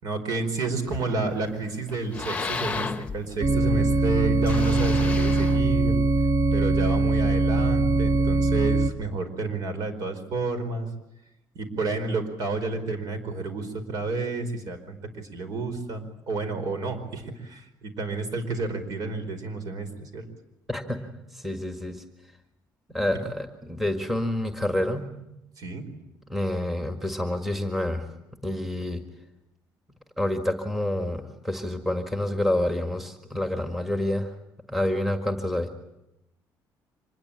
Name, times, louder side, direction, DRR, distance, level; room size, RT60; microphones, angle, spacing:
voice 1, 0.0-5.9 6.5-10.9 11.5-20.2 23.1-23.2 25.6-25.8, right 3 dB, 60° right, 8 dB, 4.9 m, -30 dB
sound 1, 0.9-1.5 1.9-3.7 4.4-6.2, left 4 dB, 20° left, 1.1 m, -33 dB
sound 2, 3.4-8.9, right 2 dB, 30° right, 1.0 m, -22 dB
voice 2, 20.7-21.0 21.3-22.0 22.9-25.1 26.3-28.0 28.4-29.0 30.2-34.4 34.7-35.7, left 1 dB, 5° right, 5 dB, 1.8 m, -28 dB
25.5 x 21.0 x 8.9 m, 0.88 s
cardioid pair, 155°, 7 cm